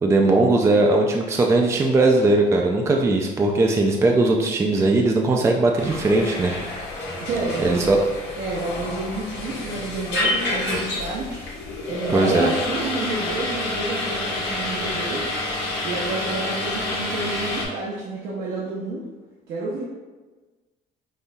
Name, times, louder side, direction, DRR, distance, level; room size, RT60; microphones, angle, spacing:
voice 1, 0.0-6.5 7.6-8.0 12.1-12.5, right 2 dB, 15° right, 1 dB, 0.3 m, -19 dB
sound 1, 5.8-17.6, left 2 dB, 75° left, 1.2 m, -28 dB
voice 2, 7.2-8.0 8.4-11.4 11.9-15.3 15.8-19.0 19.5-19.8, right 3 dB, 75° right, -6 dB, 0.7 m, -29 dB
5.3 x 2.6 x 2.2 m, 1.3 s
cardioid pair, 110°, 17 cm